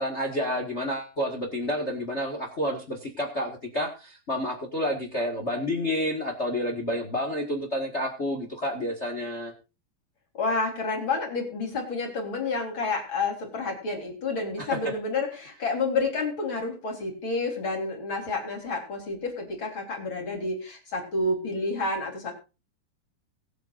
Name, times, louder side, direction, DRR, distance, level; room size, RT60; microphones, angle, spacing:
voice 1, 0.0-9.5 14.6-14.8, equal, 65° left, 3 dB, 0.6 m, -29 dB
voice 2, 10.3-22.3, left 3 dB, 30° left, 2 dB, 4.2 m, -29 dB
22.5 x 8.1 x 2.6 m, 0.31 s
omnidirectional pair, 4.6 m